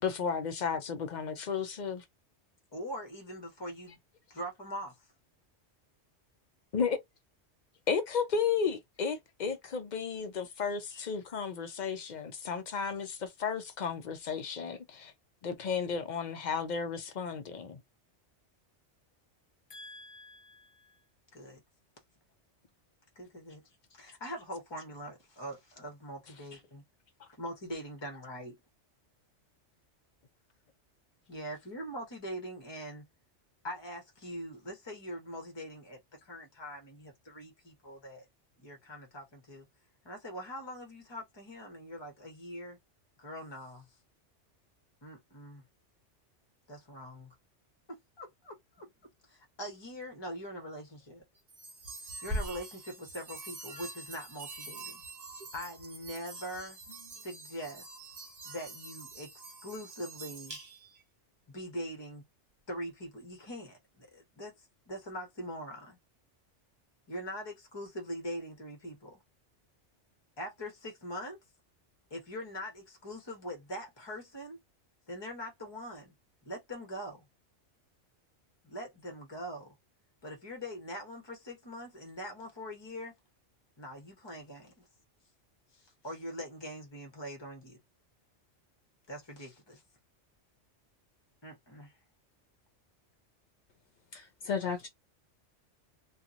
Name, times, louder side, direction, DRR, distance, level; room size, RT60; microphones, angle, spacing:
voice 1, 0.0-2.0 6.7-7.0 7.9-15.1 15.4-17.8 27.2-27.3, left 6 dB, 50° left, 0.6 m, -33 dB
voice 2, 2.7-4.0 4.3-4.9 10.9-11.0 19.7-21.0 21.3-21.6 23.1-23.6 23.9-26.8 27.4-28.6 31.3-33.0 33.6-38.2 38.6-39.7 40.0-42.8 43.2-43.9 45.0-45.6 46.7-47.3 47.9-48.9 49.3-51.2 52.2-55.0 55.5-56.8 57.2-57.9 58.4-60.6 61.5-62.2 62.7-66.0 67.1-69.2 70.4-71.4 72.1-74.6 75.1-76.1 76.4-77.2 78.6-79.7 80.2-83.1 83.8-84.8 85.7-87.8 89.1-89.8 91.4-91.9, equal, 25° left, 1.0 m, -43 dB
sound 1, 51.5-61.0, right 2 dB, 35° right, 0.9 m, -44 dB
voice 3, 94.1-94.9, left 6 dB, 75° left, 1.0 m, -34 dB
2.8 x 2.4 x 2.5 m
omnidirectional pair, 1.2 m